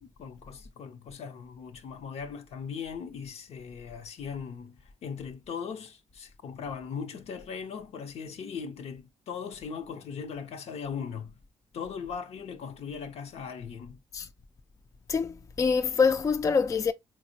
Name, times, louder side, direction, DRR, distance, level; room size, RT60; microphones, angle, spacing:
voice 1, 0.0-11.3 11.7-14.0, left 6 dB, 65° left, 0.6 m, -39 dB
voice 2, 15.1-16.9, left 5 dB, 30° left, 0.3 m, -25 dB
4.1 x 2.0 x 2.6 m
supercardioid pair, 60°, 11 cm